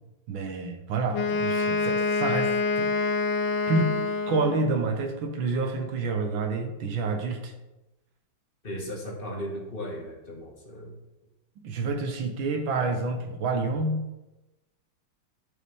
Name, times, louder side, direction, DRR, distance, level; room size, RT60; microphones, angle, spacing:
voice 1, 0.3-2.9 3.7-3.9 4.3-7.5 11.6-14.0, right 3 dB, 80° right, 4 dB, 1.8 m, -28 dB
Wind instrument woodwind instrument, 1.1-4.8, left 4 dB, 85° left, 1.6 m, -26 dB
voice 2, 8.6-11.0, equal, 30° left, -2 dB, 1.7 m, -36 dB
13.0 x 5.1 x 3.5 m, 1.0 s
omnidirectional pair, 2.2 m